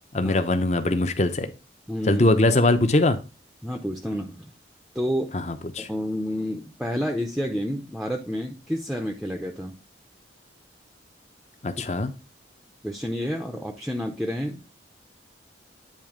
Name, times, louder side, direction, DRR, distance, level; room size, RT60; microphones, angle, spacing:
voice 1, 0.1-1.5 2.1-3.2 5.3-5.9 11.6-12.1, left 2 dB, 35° left, 9 dB, 0.7 m, -21 dB
voice 2, 1.9-2.3 3.6-4.5 4.9-5.3 5.8-9.8 11.8-11.9 12.8-14.6, equal, ahead, 3 dB, 0.5 m, -29 dB
8.9 x 3.3 x 4.9 m, 0.31 s
head